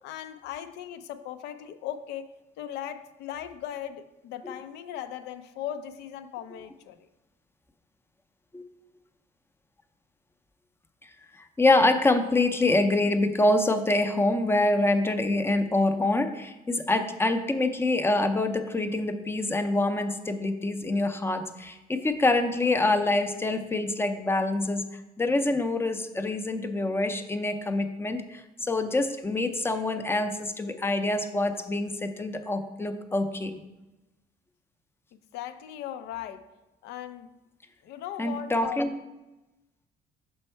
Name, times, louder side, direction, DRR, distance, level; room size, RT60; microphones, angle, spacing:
voice 1, 0.0-2.3 2.6-7.1 35.1-36.5 36.8-37.4 37.8-38.8, left 10 dB, 80° left, 10 dB, 0.5 m, -38 dB
voice 2, 11.4-24.8 25.2-33.5 38.2-38.9, left 2 dB, 15° left, 8 dB, 0.5 m, -25 dB
6.2 x 4.4 x 4.4 m, 1.0 s
cardioid pair, 110°, 17 cm